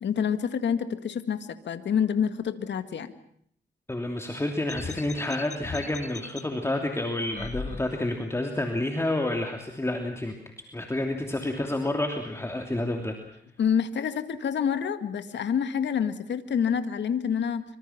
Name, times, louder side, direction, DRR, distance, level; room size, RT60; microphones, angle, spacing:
voice 1, 0.0-1.4 1.7-3.1 13.6-17.6, left 7 dB, 80° left, 10 dB, 1.9 m, -27 dB
voice 2, 3.9-10.3 10.7-13.1, left 1 dB, 15° left, 4 dB, 3.0 m, -29 dB
sound 1, 4.7-6.4 7.3-8.3, left 4 dB, 40° left, 1.5 m, -38 dB
26.0 x 25.5 x 5.9 m, 0.66 s
cardioid pair, 100°, 18 cm